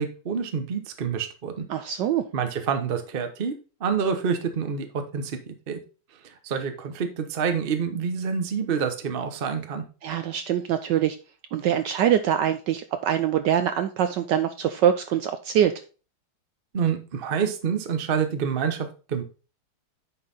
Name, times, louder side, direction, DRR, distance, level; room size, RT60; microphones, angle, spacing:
voice 1, 0.0-1.7 2.3-3.5 3.8-5.8 6.4-9.8 16.7-19.2, right 6 dB, 45° right, 8 dB, 0.7 m, -27 dB
voice 2, 1.7-2.2 10.0-11.2 11.5-15.7, right 10 dB, 75° right, 9 dB, 1.0 m, -23 dB
9.7 x 4.0 x 3.9 m, 0.35 s
omnidirectional pair, 2.3 m